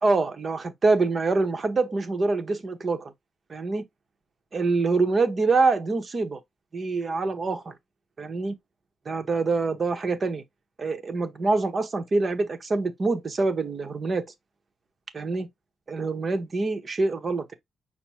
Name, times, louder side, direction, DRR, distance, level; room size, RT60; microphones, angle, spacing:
voice 1, 0.0-3.1 3.5-3.8 4.5-6.4 6.7-7.7 8.2-8.5 9.1-10.4 10.8-14.3 15.1-15.5 15.9-17.5, right 3 dB, 30° right, 0.9 m, -25 dB
5.9 x 2.1 x 4.2 m
cardioid pair, 145°, 0 cm